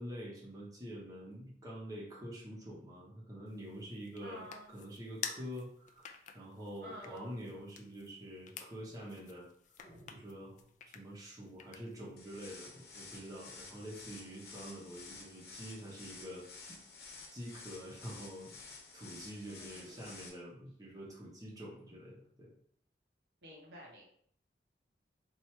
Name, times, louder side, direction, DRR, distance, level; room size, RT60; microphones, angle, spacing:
voice 1, 0.0-4.5 4.7-6.1 6.3-9.5 10.1-10.6 10.8-16.8 17.3-18.6 18.9-22.5, equal, 20° right, -5 dB, 1.0 m, -46 dB
sound 1, 3.5-12.2, left 7 dB, 45° left, 0.3 m, -50 dB
voice 2, 4.2-4.7 6.8-7.3 19.4-20.1 23.4-24.0, equal, 65° right, -2 dB, 1.0 m, -51 dB
sound 2, 9.8-11.2, right 1 dB, 10° left, 1.3 m, -60 dB
sound 3, 12.2-20.3, left 4 dB, 60° left, 1.0 m, -52 dB
3.0 x 2.6 x 4.4 m, 0.64 s
head